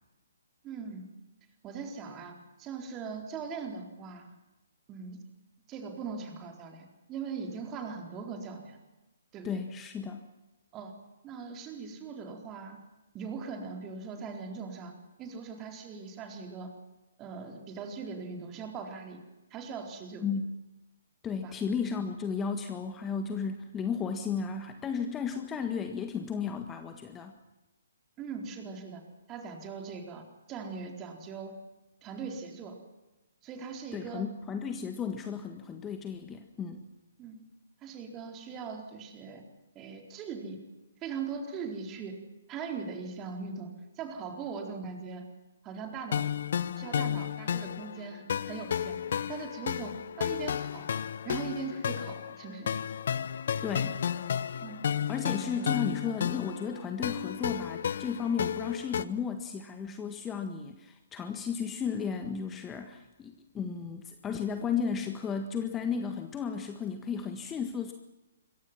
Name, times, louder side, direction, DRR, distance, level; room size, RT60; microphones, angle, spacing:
voice 1, 0.6-1.0 1.6-4.3 4.9-5.2 5.7-8.8 9.3-9.6 10.7-10.9 11.2-12.8 13.1-14.9 15.2-16.7 17.2-19.2 19.5-20.3 21.4-21.5 28.2-29.0 29.3-31.5 32.0-32.8 33.4-34.2 37.2-37.4 37.8-39.4 39.7-40.6 41.0-42.2 42.5-43.7 43.9-45.3 45.6-46.3 46.8-49.0 49.3-50.9 51.2-52.7 54.6-54.8 55.6-55.8, right 5 dB, 20° right, 3 dB, 4.1 m, -40 dB
voice 2, 9.4-10.2 20.2-20.4 21.2-27.4 33.9-36.8 53.6-54.0 55.1-67.9, left 6 dB, 15° left, 6 dB, 1.6 m, -34 dB
sound 1, 46.1-59.0, left 8 dB, 50° left, 0.9 m, -33 dB
26.5 x 23.0 x 6.0 m, 1.1 s
figure-of-eight pair, 130°, 0 cm